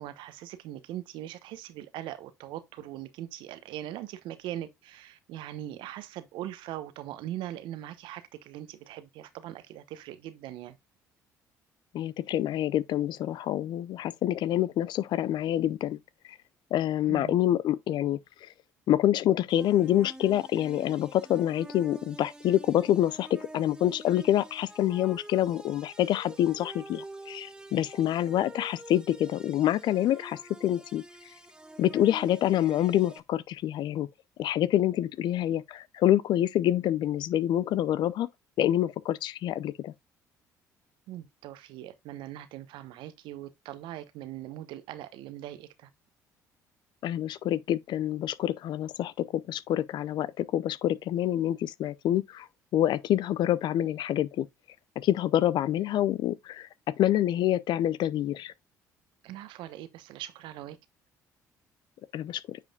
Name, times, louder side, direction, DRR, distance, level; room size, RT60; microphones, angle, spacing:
voice 1, 0.0-10.8 17.1-17.3 41.1-45.9 59.2-60.8, right 13 dB, 70° right, 0.9 m, -41 dB
voice 2, 11.9-16.0 16.3-16.4 16.7-18.5 18.9-31.0 31.8-34.1 34.4-38.3 38.6-39.9 47.0-52.5 52.7-54.5 55.0-56.7 57.0-58.5 62.1-62.6, left 12 dB, 60° left, 0.5 m, -27 dB
sound 1, 19.5-33.2, right 1 dB, 10° right, 1.1 m, -47 dB
9.3 x 5.1 x 2.3 m
hypercardioid pair, 55°, 9 cm